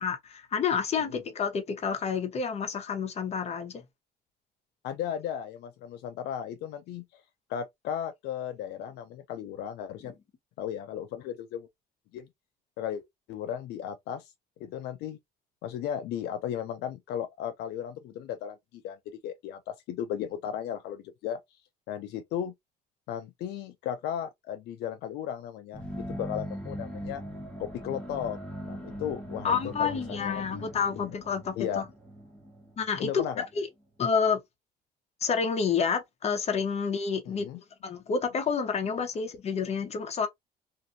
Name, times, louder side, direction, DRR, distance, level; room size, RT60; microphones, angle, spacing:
voice 1, 0.0-3.8 29.4-31.8 32.8-33.2 33.6-33.7 34.0-34.4 35.2-37.5 37.8-40.3, left 6 dB, 40° left, 0.9 m, -29 dB
voice 2, 4.8-7.2 7.5-10.1 10.6-11.7 12.1-12.3 12.8-13.0 13.3-14.3 14.6-15.2 15.6-19.0 19.2-21.4 21.9-22.5 23.1-27.2 27.6-28.4 28.6-30.7 31.0-31.2 31.6-31.8 33.0-33.5 37.3-37.6, left 9 dB, 80° left, 0.5 m, -35 dB
sound 1, 25.7-33.5, equal, 5° left, 1.2 m, -40 dB
2.6 x 2.5 x 2.6 m
cardioid pair, 110°, 17 cm